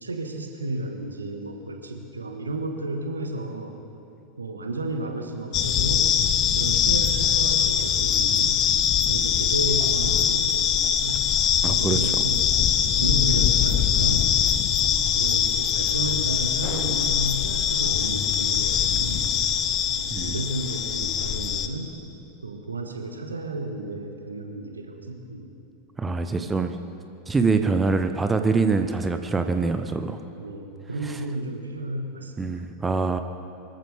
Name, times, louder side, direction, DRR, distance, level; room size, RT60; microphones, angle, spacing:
voice 1, 0.0-3.7 4.4-6.1 6.5-8.6 9.1-11.3 11.7-12.5 12.9-14.3 14.8-19.3 19.9-21.9 22.4-25.5 30.4-32.5, right 2 dB, 75° right, 4 dB, 1.5 m, -32 dB
sound 1, 5.5-21.7, left 9 dB, 35° left, 0.9 m, -22 dB
voice 2, 11.6-12.1 20.1-20.3 26.0-26.8 27.3-30.2 31.0-31.2 32.4-33.2, right 4 dB, 15° right, 8 dB, 0.8 m, -24 dB
23.5 x 14.5 x 3.5 m, 2.8 s
figure-of-eight pair, 85°, 0 cm